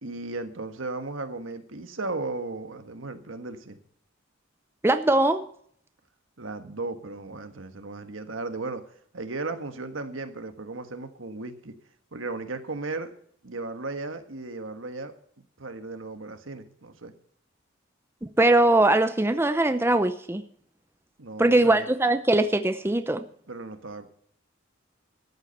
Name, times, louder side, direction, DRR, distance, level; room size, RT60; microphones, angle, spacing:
voice 1, 0.0-3.8 6.4-8.8 9.1-11.7 12.1-13.1 13.4-15.1 15.6-17.1 21.2-21.9 23.5-24.1, right 3 dB, 75° right, 8 dB, 1.5 m, -35 dB
voice 2, 4.8-5.5 18.2-20.4 21.4-23.2, right 2 dB, 10° right, 10 dB, 0.6 m, -21 dB
13.5 x 8.2 x 6.7 m, 0.62 s
head